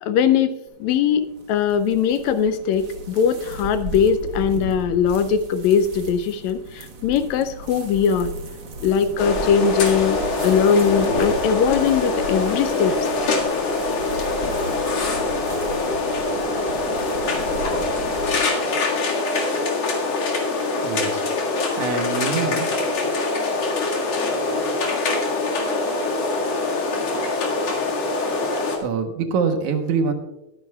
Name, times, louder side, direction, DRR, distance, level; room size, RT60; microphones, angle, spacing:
voice 1, 0.0-8.3 8.8-13.0, left 7 dB, 80° left, 10 dB, 1.7 m, -20 dB
sound 1, 0.7-18.4, right 2 dB, 50° right, 1.7 m, -36 dB
sound 2, 9.2-28.8, left 3 dB, 55° left, 2.9 m, -24 dB
voice 2, 20.8-21.2 21.8-22.7 28.8-30.1, right 5 dB, 70° right, 5 dB, 2.4 m, -24 dB
21.5 x 10.0 x 2.3 m, 0.98 s
omnidirectional pair, 3.6 m